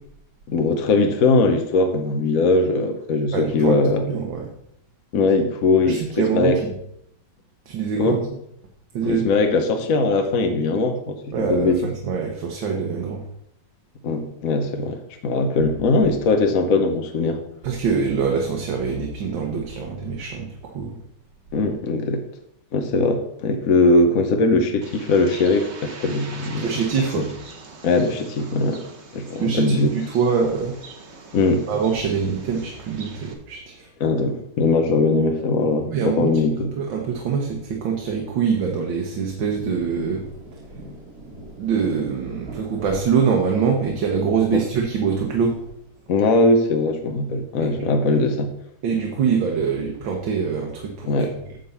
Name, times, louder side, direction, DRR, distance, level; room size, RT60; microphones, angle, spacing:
voice 1, 0.5-4.0 5.1-6.6 8.0-8.2 9.0-11.9 14.0-17.4 21.5-22.2 22.7-26.8 27.2-27.3 27.8-28.8 29.1-29.9 31.3-31.6 34.0-36.7 44.5-44.6 46.1-48.5 51.1-51.4, left 3 dB, 55° left, 5 dB, 1.1 m, -20 dB
voice 2, 3.3-3.8 4.1-4.5 5.9-6.5 7.7-8.2 8.9-9.3 11.3-13.2 17.6-21.0 26.6-27.2 29.4-30.8 31.7-33.9 35.9-36.3 36.8-40.2 41.6-45.5 48.8-51.1, right 6 dB, 85° right, 1 dB, 1.8 m, -24 dB
Bird, 24.8-33.3, right 4 dB, 45° right, 1.2 m, -42 dB
Rain, 38.9-46.1, right 1 dB, 60° right, 4.0 m, -43 dB
10.0 x 3.8 x 7.0 m, 0.75 s
omnidirectional pair, 2.0 m